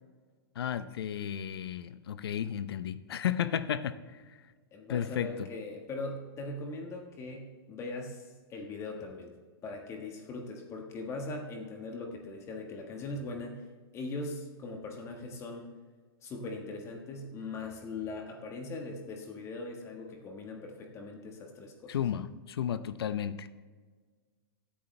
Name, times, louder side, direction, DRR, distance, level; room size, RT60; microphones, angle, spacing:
voice 1, 0.6-4.4 4.9-5.5 21.9-23.5, left 9 dB, 80° left, 13 dB, 0.7 m, -33 dB
voice 2, 4.7-9.3 9.6-13.6 13.9-15.7 16.2-21.9, left 2 dB, 20° left, 2 dB, 1.5 m, -40 dB
21.0 x 8.5 x 3.3 m, 1.5 s
hypercardioid pair, 150°, 13 cm